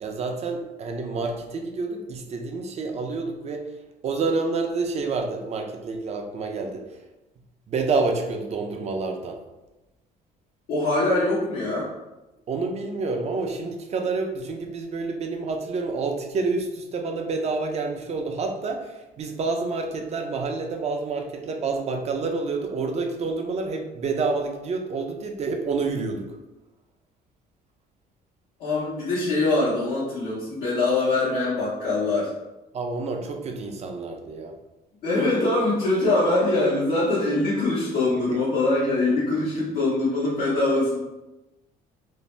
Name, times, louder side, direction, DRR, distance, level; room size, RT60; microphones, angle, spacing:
voice 1, 0.0-3.7 4.0-6.9 7.7-9.4 12.5-26.4 32.7-34.5 38.3-38.4, right 3 dB, 40° right, 3 dB, 0.4 m, -28 dB
voice 2, 10.7-11.9 28.6-32.3 35.0-41.0, left 2 dB, 90° left, -10 dB, 1.0 m, -23 dB
2.6 x 2.1 x 3.2 m, 1.0 s
cardioid pair, 110°, 17 cm